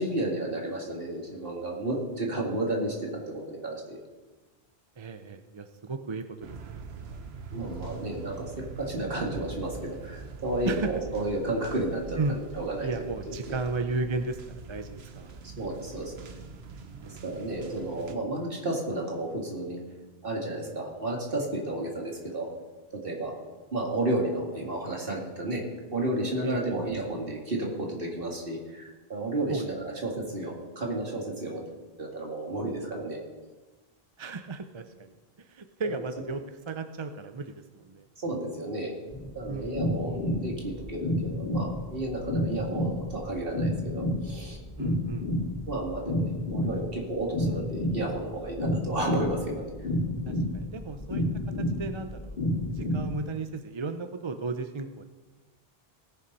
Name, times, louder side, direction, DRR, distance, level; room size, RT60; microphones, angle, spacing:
voice 1, 0.0-4.0 7.5-8.5 8.8-13.6 15.6-16.1 17.2-19.8 20.2-22.5 22.9-23.3 23.7-25.6 25.9-31.6 32.0-33.2 35.8-35.9 38.2-38.9 39.3-44.6 45.7-49.7, right 1 dB, 60° right, -1 dB, 2.5 m, -32 dB
voice 2, 5.0-7.2 10.7-10.9 12.2-12.4 12.8-15.4 17.0-17.2 26.4-26.8 29.5-29.6 34.2-38.1 39.5-39.8 44.8-45.3 50.3-52.4 52.7-55.0, right 3 dB, 35° right, 7 dB, 0.5 m, -35 dB
sound 1, 6.4-18.1, right 4 dB, 80° right, 1.2 m, -43 dB
sound 2, 39.1-53.1, left 1 dB, 55° left, 3.0 m, -30 dB
18.5 x 7.0 x 5.4 m, 1.3 s
omnidirectional pair, 1.0 m